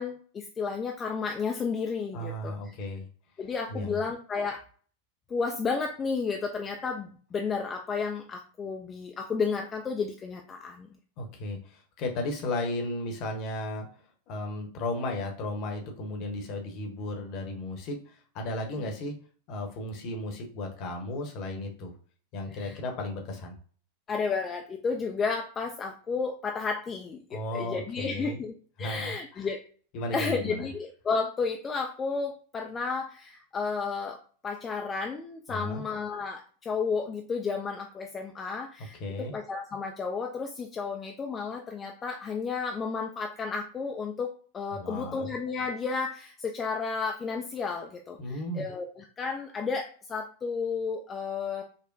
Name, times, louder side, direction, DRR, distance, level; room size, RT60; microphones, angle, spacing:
voice 1, 0.0-2.6 3.4-4.6 5.3-10.9 22.5-22.8 24.1-28.5 28.8-29.6 30.1-51.6, left 5 dB, 20° left, 3 dB, 0.4 m, -32 dB
voice 2, 2.1-3.0 3.7-4.0 11.2-13.9 14.3-19.2 19.5-21.9 22.3-23.6 27.3-28.4 28.8-29.5 29.9-30.7 35.5-35.8 39.0-39.4 44.7-45.3 48.2-48.7, left 2 dB, 40° left, 3 dB, 0.9 m, -35 dB
5.3 x 2.1 x 2.6 m, 0.43 s
figure-of-eight pair, 90°, 0 cm